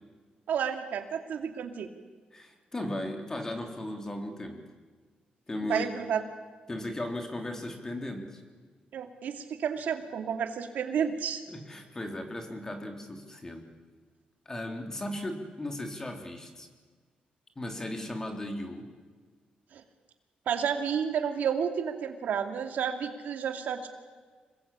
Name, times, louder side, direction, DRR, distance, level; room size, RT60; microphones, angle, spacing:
voice 1, 0.5-1.9 5.7-6.2 8.9-11.4 19.7-19.8 20.5-23.9, right 7 dB, 80° right, 6 dB, 2.5 m, -31 dB
voice 2, 2.3-4.6 5.5-5.9 6.7-8.4 11.5-13.7 14.5-16.7 17.6-18.9, left 1 dB, 20° left, 4 dB, 3.5 m, -36 dB
27.0 x 21.5 x 8.5 m, 1.5 s
wide cardioid pair, 155°, 3 cm